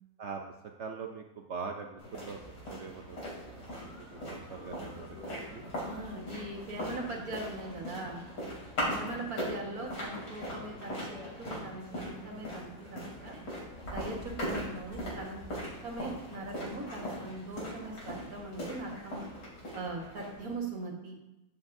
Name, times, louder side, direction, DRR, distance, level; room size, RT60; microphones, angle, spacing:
voice 1, 0.8-2.4 2.7-5.6 8.9-9.1, right 5 dB, 80° right, 3 dB, 0.6 m, -43 dB
sound 1, 2.0-20.5, equal, 65° left, 3.9 m, -40 dB
voice 2, 5.8-8.2 8.8-13.4 13.9-15.4 15.8-19.2 19.7-21.2, right 2 dB, 50° right, 0 dB, 1.9 m, -41 dB
13.5 x 7.3 x 2.6 m, 0.97 s
omnidirectional pair, 2.0 m